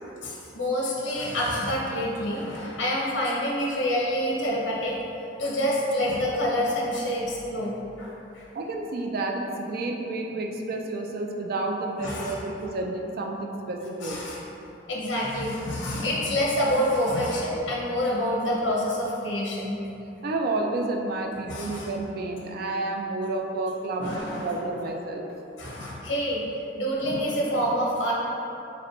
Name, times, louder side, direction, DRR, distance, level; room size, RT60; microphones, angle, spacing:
voice 1, 0.0-4.9 5.4-7.7 8.0-8.4 12.0-12.4 14.0-14.4 14.9-19.8 21.5-21.9 24.0-24.5 25.6-26.5 26.8-28.1, equal, 70° left, -4 dB, 0.8 m, -27 dB
voice 2, 8.5-14.2 20.2-25.3, right 2 dB, 55° right, 2 dB, 0.4 m, -30 dB
3.0 x 2.9 x 4.3 m, 2.9 s
head